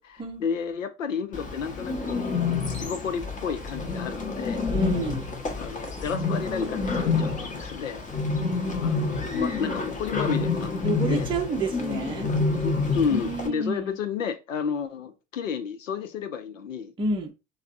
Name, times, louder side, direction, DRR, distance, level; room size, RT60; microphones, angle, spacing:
voice 1, 0.0-2.3 2.6-4.6 5.6-8.0 8.8-11.3 12.6-16.9, left 6 dB, 90° left, 0.5 m, -31 dB
Bird, 1.3-13.5, left 4 dB, 20° left, 0.8 m, -28 dB
voice 2, 4.7-5.3 10.8-12.3 13.1-14.0 17.0-17.3, right 2 dB, 15° right, 0.6 m, -29 dB
3.3 x 2.0 x 2.4 m
hypercardioid pair, 80°, 37 cm